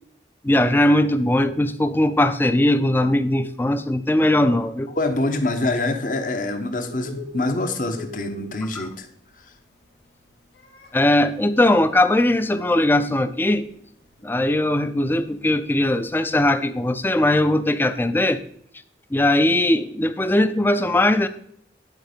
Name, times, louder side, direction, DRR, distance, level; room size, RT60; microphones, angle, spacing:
voice 1, 0.4-4.9 8.8-8.9 10.9-13.7 14.2-18.4 19.1-21.3, left 1 dB, 10° left, 11 dB, 0.4 m, -19 dB
voice 2, 5.0-9.1, left 2 dB, 50° left, 7 dB, 0.9 m, -25 dB
Bird, 6.4-18.5, left 2 dB, 80° left, 1.2 m, -46 dB
10.5 x 4.3 x 5.1 m, 0.66 s
head